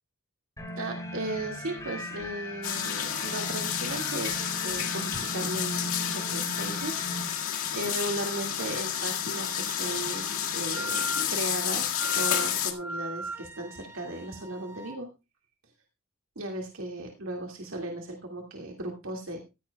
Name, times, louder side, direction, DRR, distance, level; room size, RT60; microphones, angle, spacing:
sound 1, 0.6-7.2, equal, 15° left, 3.7 m, -38 dB
voice 1, 0.8-6.9 7.2-15.1 16.4-19.4, right 1 dB, 70° right, 1 dB, 2.2 m, -36 dB
sound 2, 2.6-12.7, left 9 dB, 85° left, 2.0 m, -30 dB
Wind instrument woodwind instrument, 8.6-15.0, equal, 10° right, 1.3 m, -40 dB
15.0 x 14.5 x 2.3 m, 0.27 s
head